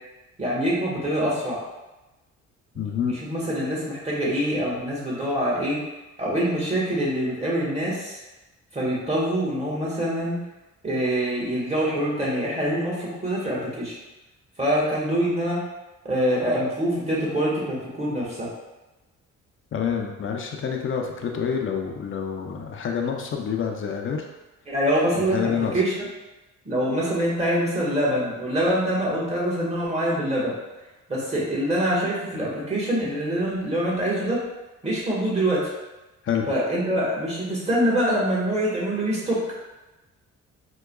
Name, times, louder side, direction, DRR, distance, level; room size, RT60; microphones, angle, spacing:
voice 1, 0.4-1.6 2.9-5.8 6.2-8.2 8.7-10.4 10.8-14.0 14.6-15.6 16.0-18.5 24.7-25.5 25.7-26.1 26.6-30.5 31.1-34.4 34.8-35.7 36.5-39.6, equal, 20° right, -6 dB, 1.3 m, -25 dB
voice 2, 2.8-3.1 19.7-24.2 25.1-25.8 36.2-36.5, left 7 dB, 45° left, 2 dB, 0.5 m, -27 dB
4.6 x 2.2 x 2.2 m, 1.1 s
cardioid pair, 90°, 30 cm